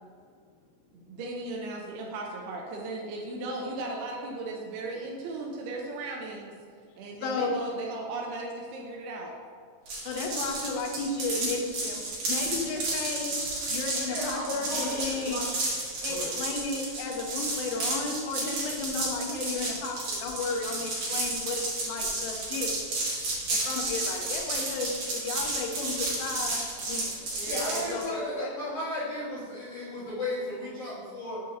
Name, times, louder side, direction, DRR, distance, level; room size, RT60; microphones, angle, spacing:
voice 1, 0.9-6.5 7.0-9.3 27.4-28.0, right 2 dB, 90° right, -1 dB, 2.6 m, -36 dB
voice 2, 7.2-7.5 10.0-13.4 13.7-15.4 16.0-22.7 23.5-27.3 27.9-28.5, left 3 dB, 80° left, 1 dB, 1.9 m, -34 dB
sound 1, 9.9-28.1, right 2 dB, 55° right, 2.6 m, -32 dB
voice 3, 14.0-15.4 16.0-16.3 27.4-31.4, left 1 dB, 55° left, -11 dB, 2.0 m, -34 dB
6.9 x 6.4 x 2.7 m, 2.1 s
omnidirectional pair, 4.5 m